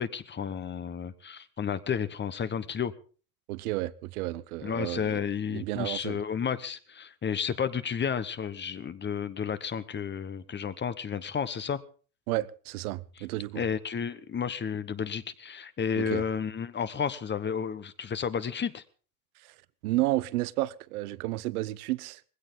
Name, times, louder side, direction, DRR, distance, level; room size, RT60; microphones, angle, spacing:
voice 1, 0.0-2.9 4.6-11.8 13.5-18.8, left 7 dB, 25° left, 1.1 m, -32 dB
voice 2, 3.5-5.2 5.5-6.2 12.3-13.6 16.0-16.2 19.8-22.2, right 17 dB, 75° right, 0.9 m, -31 dB
19.5 x 16.5 x 3.9 m
hypercardioid pair, 90°, 45 cm